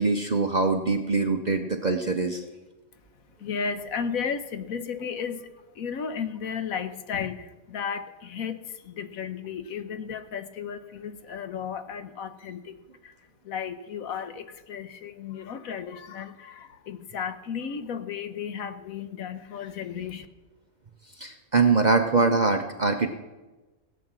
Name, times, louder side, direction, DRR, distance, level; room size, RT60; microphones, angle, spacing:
voice 1, 0.0-2.5 21.2-23.1, right 3 dB, 40° right, 5 dB, 0.7 m, -23 dB
voice 2, 3.4-5.5 5.7-12.8 13.0-13.1 13.4-20.3, left 7 dB, 70° left, 10 dB, 1.2 m, -34 dB
17.0 x 8.4 x 6.1 m, 1.2 s
omnidirectional pair, 1.6 m